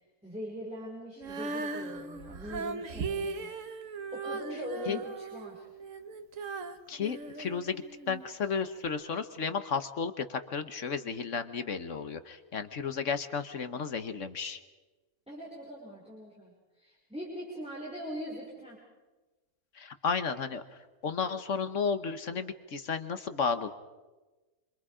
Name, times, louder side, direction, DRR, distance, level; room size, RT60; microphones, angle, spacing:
voice 1, 0.2-5.7 15.3-18.8, equal, 5° right, -4 dB, 5.5 m, -42 dB
Female singing, 1.2-8.2 8.8-8.9, right 4 dB, 60° right, 1.6 m, -38 dB
voice 2, 6.9-14.6 19.7-20.6 21.0-23.7, left 5 dB, 60° left, 10 dB, 1.4 m, -33 dB
27.0 x 26.5 x 5.0 m, 1.2 s
omnidirectional pair, 1.5 m